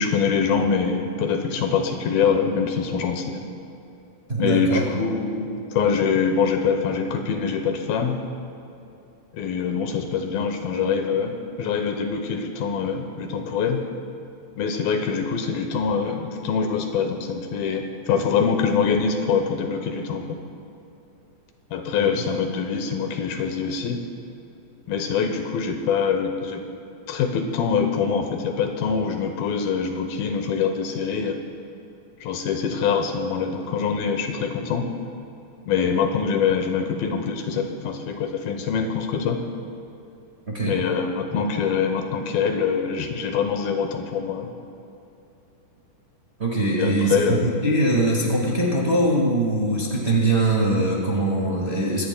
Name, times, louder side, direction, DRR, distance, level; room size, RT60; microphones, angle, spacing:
voice 1, 0.0-3.4 4.4-8.2 9.3-13.8 14.6-20.4 21.7-24.0 24.9-26.6 27.1-31.4 32.2-34.9 35.7-39.4 40.6-44.5 46.8-47.6, left 6 dB, 85° left, 5 dB, 2.7 m, -24 dB
voice 2, 4.3-4.8 22.0-22.1 40.5-40.8 46.4-52.1, right 1 dB, 45° right, -3 dB, 0.7 m, -22 dB
23.5 x 17.0 x 2.2 m, 2.8 s
omnidirectional pair, 4.2 m